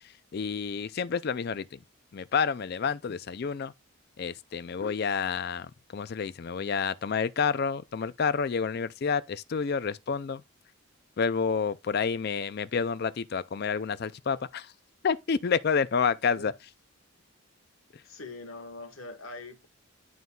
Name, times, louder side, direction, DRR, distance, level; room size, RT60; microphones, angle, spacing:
voice 1, 0.3-1.8 2.1-3.7 4.2-10.4 11.2-14.7 15.0-16.5, left 6 dB, 50° left, 0.4 m, -29 dB
voice 2, 18.0-19.7, left 3 dB, 70° left, 1.2 m, -42 dB
11.0 x 4.0 x 2.3 m
head